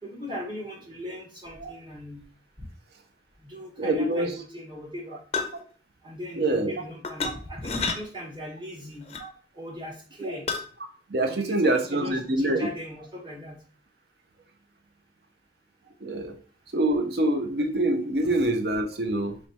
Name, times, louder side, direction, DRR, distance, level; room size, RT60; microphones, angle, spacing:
voice 1, 0.0-2.2 3.4-5.2 6.0-9.1 9.6-10.5 11.3-13.6, left 1 dB, 25° right, -2 dB, 1.2 m, -39 dB
voice 2, 3.8-4.3 6.4-6.7 9.2-9.3 11.1-12.6 16.0-16.4 16.7-19.4, right 1 dB, 60° right, 6 dB, 0.6 m, -25 dB
sound 1, 5.3-5.6 7.0-7.3 7.6-8.0 9.1-9.3 10.5-10.6, left 4 dB, 35° left, 0.5 m, -29 dB
3.2 x 3.1 x 4.2 m, 0.41 s
head